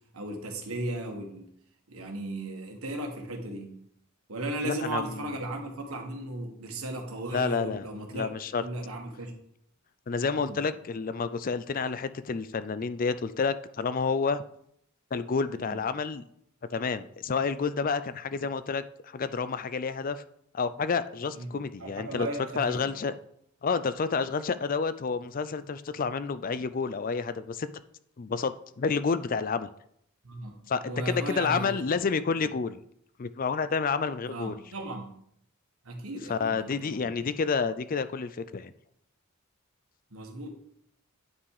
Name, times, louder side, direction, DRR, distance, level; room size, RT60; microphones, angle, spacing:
voice 1, 0.1-1.5 1.9-3.7 4.3-8.3 8.6-9.3 10.4-10.6 15.5-15.8 21.3-22.9 30.2-30.6 30.8-31.8 34.3-35.1 35.8-37.0 40.1-40.5, right 1 dB, 85° right, 3 dB, 1.7 m, -36 dB
voice 2, 4.6-5.3 7.3-7.9 8.1-8.6 10.1-14.4 15.1-16.2 16.7-20.2 20.5-22.3 22.5-23.1 23.6-27.7 28.2-29.7 30.7-32.8 33.2-34.6 36.3-38.7, left 5 dB, 40° left, 13 dB, 0.4 m, -29 dB
9.4 x 5.8 x 4.8 m, 0.71 s
head